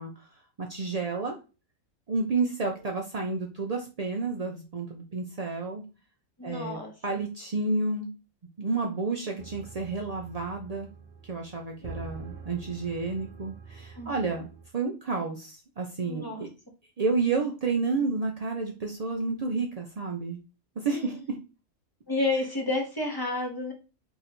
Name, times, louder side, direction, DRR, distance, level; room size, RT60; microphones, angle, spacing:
voice 1, 0.0-1.4 2.1-5.8 6.4-8.1 8.6-10.9 11.2-14.5 14.7-16.5 17.0-20.4 20.8-21.4, right 3 dB, 75° right, 1 dB, 0.3 m, -30 dB
voice 2, 6.4-7.2 14.0-14.4 16.1-16.4 20.9-21.1 22.1-23.7, left 2 dB, 25° left, 1 dB, 0.6 m, -31 dB
sound 1, 9.4-14.7, right 5 dB, 50° right, 0.9 m, -45 dB
2.9 x 2.6 x 4.2 m, 0.31 s
omnidirectional pair, 1.4 m